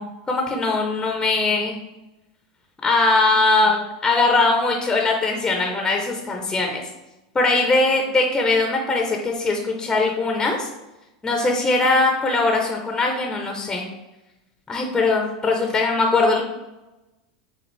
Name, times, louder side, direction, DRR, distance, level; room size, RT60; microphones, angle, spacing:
voice 1, 0.0-1.8 2.8-3.8 4.0-6.8 7.3-10.7 11.2-13.9 14.7-16.4, left 3 dB, 15° left, 2 dB, 0.7 m, -20 dB
5.9 x 2.4 x 3.2 m, 0.99 s
hypercardioid pair, 100°, 3 cm